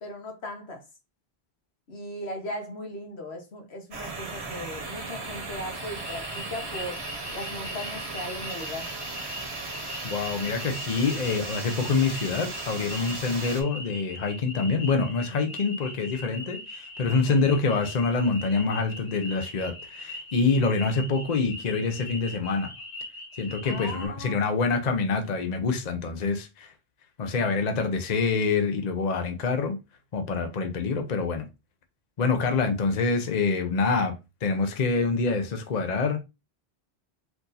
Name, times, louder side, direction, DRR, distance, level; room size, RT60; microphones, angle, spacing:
voice 1, 0.0-0.8 1.9-7.0 7.3-8.9 15.3-15.6 17.1-17.4 23.4-24.5 30.4-30.7, left 1 dB, 80° left, 1.5 m, -38 dB
sound 1, 3.9-13.6, right 3 dB, 80° right, 1.6 m, -37 dB
sound 2, 6.0-24.1, left 1 dB, 65° left, 1.9 m, -41 dB
voice 2, 10.0-22.7 23.4-26.7 27.2-29.8 30.1-31.4 32.2-34.1 34.4-36.2, left 4 dB, 45° left, 0.8 m, -26 dB
4.6 x 2.6 x 4.0 m
omnidirectional pair, 1.1 m